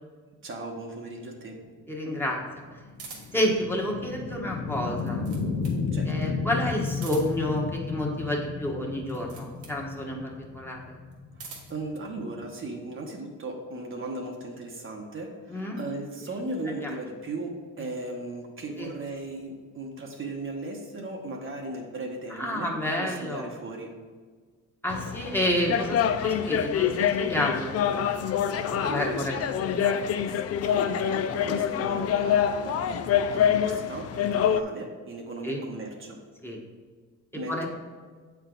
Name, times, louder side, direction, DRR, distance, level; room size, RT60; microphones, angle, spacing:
voice 1, 0.4-1.6 5.9-6.4 11.3-24.0 28.8-29.5 30.3-36.2 37.3-37.7, right 2 dB, 45° right, 1 dB, 1.0 m, -37 dB
sound 1, 1.9-12.6, left 4 dB, 75° left, 0.9 m, -33 dB
voice 2, 1.9-2.4 3.3-5.2 6.1-10.8 15.5-15.8 16.8-16.9 18.8-18.9 22.3-23.5 24.8-27.9 28.6-29.3 29.7-30.0 35.4-35.6 36.4-36.6 37.5-37.7, left 1 dB, 5° left, -2 dB, 1.2 m, -29 dB
sound 2, 3.0-3.5 4.8-5.8 6.9-7.5 9.0-9.8 11.1-11.8, right 4 dB, 85° right, 1.4 m, -45 dB
sound 3, 24.9-34.6, left 9 dB, 55° left, 0.4 m, -26 dB
7.4 x 4.7 x 3.8 m, 1.5 s
cardioid pair, 90°, 30 cm